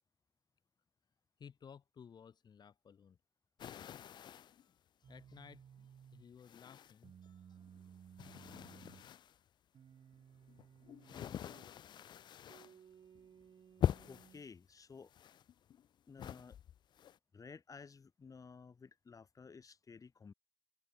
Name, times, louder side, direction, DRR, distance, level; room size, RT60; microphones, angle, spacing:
voice 1, 1.4-3.2 4.2-7.6, left 7 dB, 70° left, 5.4 m, -58 dB
sound 1, 3.6-4.7 5.3-5.4 6.4-7.3 7.6-9.4 10.1-12.8 13.1-13.4 13.8-14.4 15.1-15.9 16.2-17.2, left 10 dB, 90° left, 0.4 m, -42 dB
sound 2, 5.0-6.3 7.0-9.1 9.7-11.7 12.5-14.5, right 8 dB, 85° right, 2.9 m, -59 dB
voice 2, 14.1-15.1 16.1-16.6 17.3-20.3, left 5 dB, 50° left, 7.2 m, -54 dB
wide cardioid pair, 95°, 7 cm